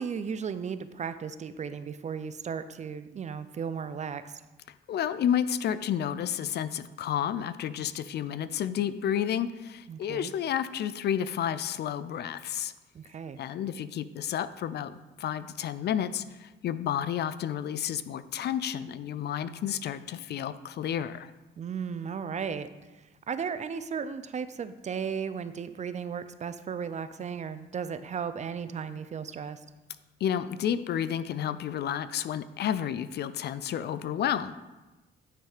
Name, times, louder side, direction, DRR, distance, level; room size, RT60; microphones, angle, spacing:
voice 1, 0.0-4.4 9.9-10.3 12.9-13.4 21.6-22.7 23.3-29.6, right 6 dB, 35° right, 12 dB, 0.4 m, -35 dB
voice 2, 4.9-12.7 13.4-21.3 30.2-34.5, left 9 dB, 60° left, 14 dB, 0.4 m, -31 dB
9.1 x 3.3 x 4.9 m, 1.1 s
cardioid pair, 90°, 20 cm